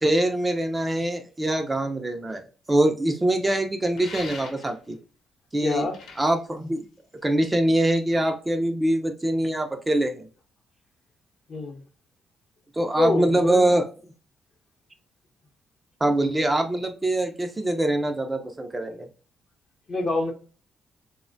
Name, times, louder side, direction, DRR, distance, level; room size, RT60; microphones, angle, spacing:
voice 1, 0.0-2.4 2.7-5.0 5.5-5.9 6.2-6.9 7.2-10.3 12.8-13.8 16.0-19.1, right 1 dB, 15° right, 0.4 m, -23 dB
sound 1, 3.9-4.9 5.7-7.4, left 4 dB, 80° left, 0.9 m, -42 dB
voice 2, 5.6-6.0 11.5-11.8 13.0-13.7 19.9-20.3, left 3 dB, 45° left, 0.8 m, -25 dB
3.0 x 2.1 x 2.5 m
cardioid pair, 95°, 0 cm